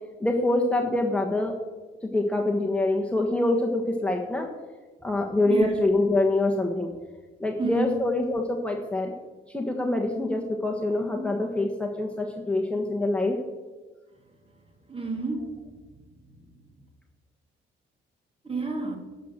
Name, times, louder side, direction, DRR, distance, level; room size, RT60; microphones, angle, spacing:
voice 1, 0.2-1.5 2.0-4.5 5.0-6.9 7.4-9.1 9.5-13.4, left 2 dB, 5° left, 0 dB, 1.4 m, -25 dB
voice 2, 5.5-5.8 7.6-8.0 14.9-15.6 18.4-19.0, right 3 dB, 30° right, 3 dB, 2.6 m, -30 dB
11.0 x 6.6 x 7.3 m, 1.3 s
cardioid pair, 90°, 20 cm